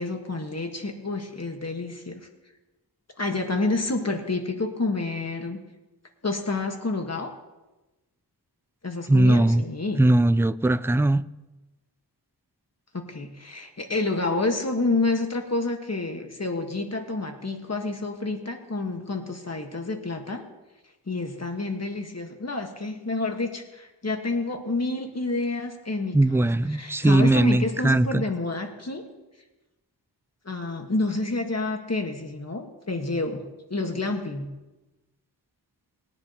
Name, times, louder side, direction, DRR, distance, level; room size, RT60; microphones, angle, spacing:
voice 1, 0.0-2.3 3.2-5.6 6.2-7.3 8.8-10.0 12.9-20.4 21.1-29.1 30.4-33.4 33.7-34.5, left 3 dB, 40° left, 1.5 m, -29 dB
voice 2, 9.1-9.6 10.0-11.2 26.1-28.2, right 1 dB, 5° right, 0.4 m, -20 dB
21.0 x 9.7 x 2.9 m
wide cardioid pair, 65°, 40 cm